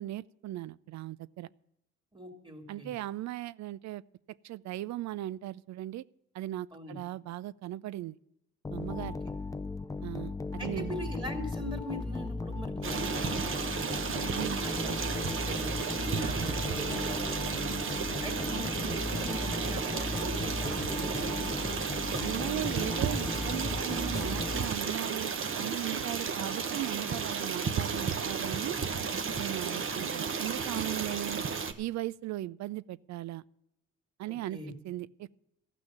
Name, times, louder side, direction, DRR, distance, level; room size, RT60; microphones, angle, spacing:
voice 1, 0.0-1.5 2.7-4.0 4.4-6.0 6.3-8.2 8.7-9.2 10.0-10.9 14.3-14.6 22.2-28.8 29.4-31.4 31.8-33.4 34.2-34.6 34.8-35.4, right 15 dB, 65° right, 20 dB, 0.4 m, -38 dB
voice 2, 2.1-2.9 6.7-7.0 9.0-9.1 10.6-14.1 14.6-17.8 18.2-21.5 29.7-29.8 34.3-34.7, equal, 15° right, 3 dB, 2.5 m, -42 dB
sound 1, 8.6-25.1, left 3 dB, 10° left, 0.5 m, -36 dB
Stream, 12.8-31.7, right 6 dB, 45° right, 1.1 m, -33 dB
14.0 x 6.2 x 8.7 m, 0.85 s
cardioid pair, 90°, 30 cm